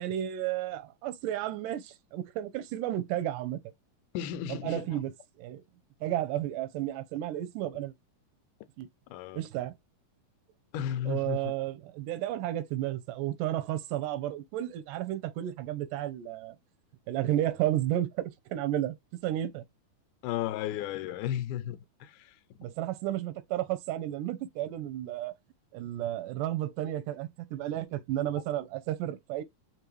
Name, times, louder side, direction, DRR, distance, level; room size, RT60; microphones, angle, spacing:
voice 1, 0.0-3.6 4.5-5.1 5.4-5.6 6.0-7.9 8.8-8.9 9.3-9.7 11.1-16.6 17.1-19.0 19.2-19.6 22.6-25.3 25.7-29.4, right 13 dB, 85° right, 2.3 m, -32 dB
voice 2, 4.1-5.0 9.1-9.4 10.7-11.5 20.2-22.4, left 10 dB, 80° left, 2.1 m, -34 dB
5.3 x 3.3 x 3.0 m
omnidirectional pair, 3.7 m